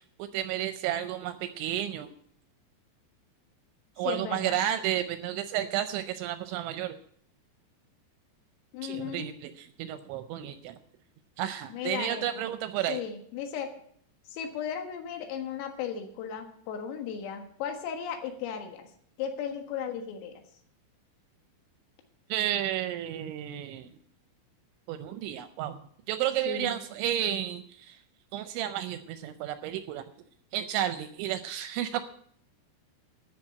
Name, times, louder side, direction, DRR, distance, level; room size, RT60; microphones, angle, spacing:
voice 1, 0.2-2.1 4.0-7.0 8.8-10.8 11.4-13.0 22.3-23.9 24.9-25.8 26.1-28.0 28.3-30.0 30.5-32.0, right 11 dB, 80° right, 10 dB, 2.7 m, -32 dB
voice 2, 4.0-4.6 8.7-9.3 11.7-12.5 12.9-13.7 14.3-18.9 19.2-20.4 26.5-26.8, left 8 dB, 90° left, 5 dB, 4.3 m, -36 dB
13.5 x 6.1 x 8.6 m, 0.63 s
omnidirectional pair, 5.8 m